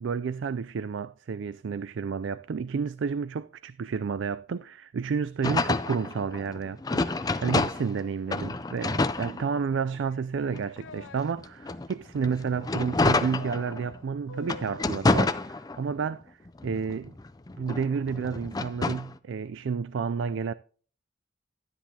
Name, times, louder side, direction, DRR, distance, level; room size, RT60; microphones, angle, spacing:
voice 1, 0.0-16.4 16.6-17.1 17.6-20.5, right 5 dB, 65° right, 0.4 m, -31 dB
sound 1, 5.4-8.0 8.3-10.0 10.5-14.0 14.4-16.1 16.5-19.1, left 3 dB, 20° left, 0.4 m, -29 dB
sound 2, 9.9-11.2 13.4-15.0, left 3 dB, 70° left, 0.6 m, -46 dB
12.0 x 10.0 x 2.8 m
head